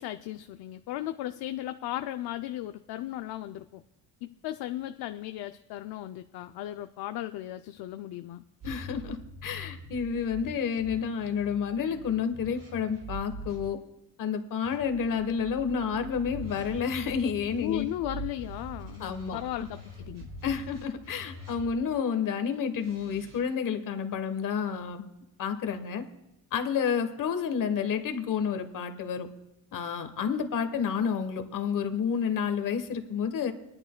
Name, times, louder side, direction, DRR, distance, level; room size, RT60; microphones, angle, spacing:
voice 1, 0.0-3.8 4.2-8.4 17.6-20.3, left 14 dB, 70° left, 8 dB, 0.5 m, -36 dB
voice 2, 8.6-9.2 9.4-13.8 14.2-17.9 19.0-19.7 20.4-25.0 25.4-26.0 26.5-29.3 29.7-33.5, left 7 dB, 55° left, 7 dB, 1.2 m, -30 dB
sound 1, 8.6-13.7 14.6-22.0 22.7-23.4, right 1 dB, 55° right, 5.1 m, -44 dB
21.0 x 11.0 x 2.2 m, 0.90 s
cardioid pair, 145°, 38 cm